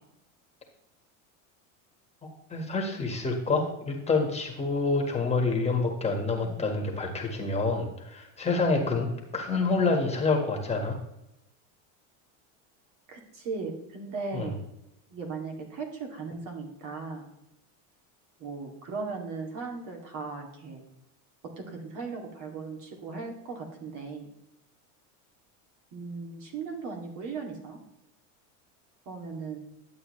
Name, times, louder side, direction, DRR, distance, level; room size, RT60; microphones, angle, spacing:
voice 1, 2.5-9.1 9.3-11.0 14.3-14.5, left 3 dB, 15° left, 1 dB, 1.7 m, -27 dB
voice 2, 8.6-9.0 13.1-14.6 15.1-17.3 18.4-20.8 21.6-24.3 25.9-27.8 29.1-29.6, right 4 dB, 50° right, 2 dB, 2.6 m, -37 dB
11.5 x 8.0 x 3.2 m, 0.85 s
supercardioid pair, 125°, 40 cm